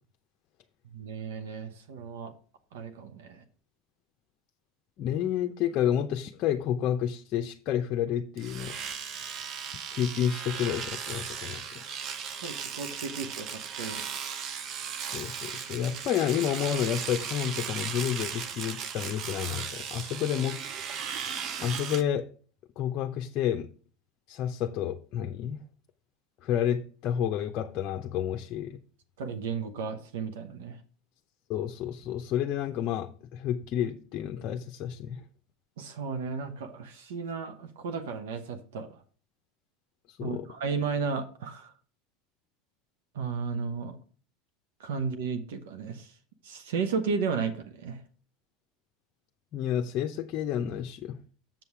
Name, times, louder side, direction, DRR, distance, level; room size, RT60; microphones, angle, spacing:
voice 1, 0.9-2.3 2.7-3.4 12.4-14.1 29.2-30.8 35.8-39.0 40.2-41.7 43.1-44.0 44.8-46.1 46.4-48.0, right 5 dB, 80° right, 0.9 m, -34 dB
voice 2, 5.0-8.7 9.9-11.8 15.1-20.6 21.6-22.3 22.8-23.7 24.3-25.6 26.4-28.8 31.5-35.2 40.1-40.5 49.5-51.2, left 10 dB, 50° left, 0.6 m, -30 dB
Domestic sounds home sounds, 8.4-22.0, right 7 dB, 50° right, 0.8 m, -37 dB
7.4 x 5.5 x 4.7 m
hypercardioid pair, 100°, 0 cm